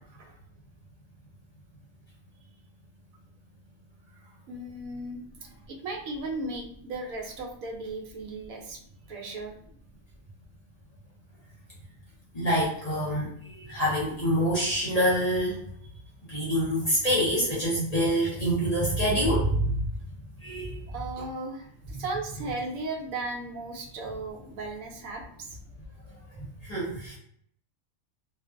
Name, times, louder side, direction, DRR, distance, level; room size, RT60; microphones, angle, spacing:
voice 1, 4.5-5.2 5.7-8.8 9.1-9.5 20.9-25.6, right 2 dB, 80° right, 2 dB, 1.0 m, -36 dB
voice 2, 12.3-15.6 16.3-19.7 20.4-20.8 26.6-27.2, equal, 35° left, -7 dB, 0.7 m, -26 dB
2.4 x 2.3 x 2.5 m, 0.65 s
omnidirectional pair, 1.4 m